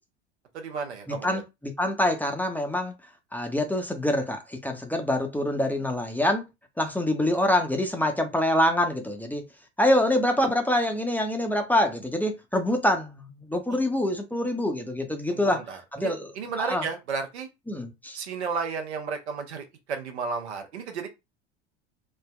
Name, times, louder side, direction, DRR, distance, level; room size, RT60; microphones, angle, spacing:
voice 1, 0.5-1.4 15.3-17.5 18.1-21.1, right 5 dB, 75° right, 0.8 m, -33 dB
voice 2, 1.2-2.9 3.3-6.4 6.8-9.4 9.8-15.6 15.9-16.3 16.6-16.8 17.7-18.2, left 1 dB, 5° left, 0.5 m, -25 dB
3.4 x 2.1 x 2.2 m
figure-of-eight pair, 75°, 34 cm